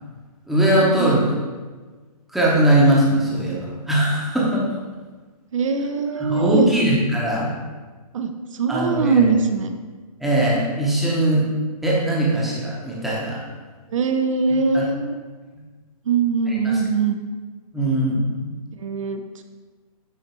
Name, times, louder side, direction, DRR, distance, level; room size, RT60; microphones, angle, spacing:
voice 1, 0.5-1.4 2.3-4.7 6.2-7.5 8.7-9.3 10.2-11.4 11.8-13.4 14.7-14.8 16.5-16.8 17.7-18.5, right 1 dB, ahead, -6 dB, 0.9 m, -20 dB
voice 2, 5.5-6.7 8.1-8.3 8.6-9.7 13.9-15.2 16.1-17.2 18.8-19.2, right 4 dB, 55° right, 7 dB, 0.7 m, -21 dB
9.0 x 3.2 x 4.4 m, 1.4 s
hypercardioid pair, 155°, 20 cm